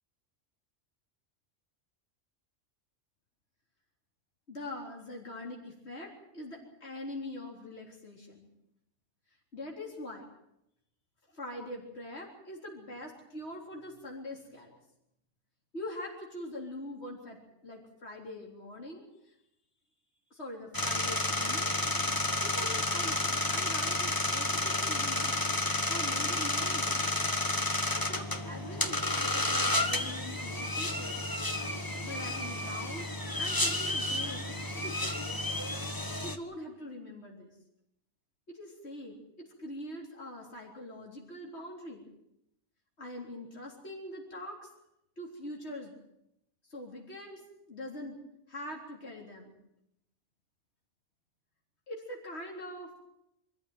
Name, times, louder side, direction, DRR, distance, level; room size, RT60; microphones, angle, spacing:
voice 1, 4.5-8.5 9.5-10.3 11.3-14.8 15.7-19.3 20.3-21.8 22.4-25.4 25.9-27.0 27.9-31.2 32.0-33.1 33.4-35.4 36.2-37.5 38.5-39.2 39.6-42.1 43.0-44.7 45.2-45.9 46.7-48.2 48.5-49.5 51.9-52.9, left 1 dB, 60° left, -1 dB, 4.1 m, -43 dB
sound 1, 20.7-36.4, left 2 dB, 15° left, 1.5 m, -31 dB
25.5 x 14.5 x 9.2 m, 0.81 s
omnidirectional pair, 1.3 m